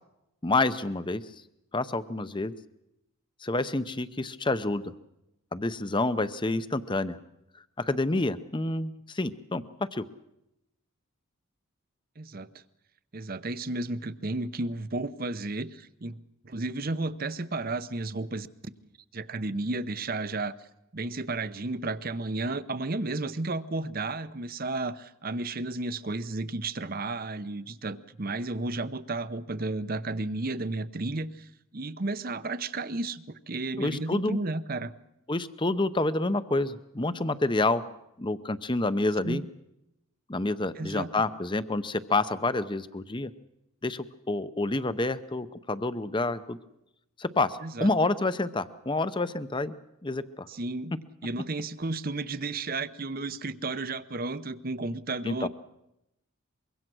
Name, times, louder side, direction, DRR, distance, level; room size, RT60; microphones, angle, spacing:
voice 1, 0.4-1.2 1.7-2.5 3.4-4.9 5.5-7.2 7.8-9.6 9.9-10.1 33.8-34.4 35.3-37.8 38.2-39.4 40.3-43.3 43.8-46.6 47.2-49.8 50.0-50.5 55.3-55.5, left 2 dB, 20° left, 13 dB, 0.7 m, -28 dB
voice 2, 12.2-12.5 13.1-16.2 16.4-18.7 19.1-20.5 20.9-34.9 39.2-39.5 40.8-41.1 47.6-47.9 50.5-51.0 51.2-55.5, right 2 dB, 40° right, 13 dB, 0.8 m, -33 dB
24.5 x 23.0 x 6.2 m, 0.88 s
head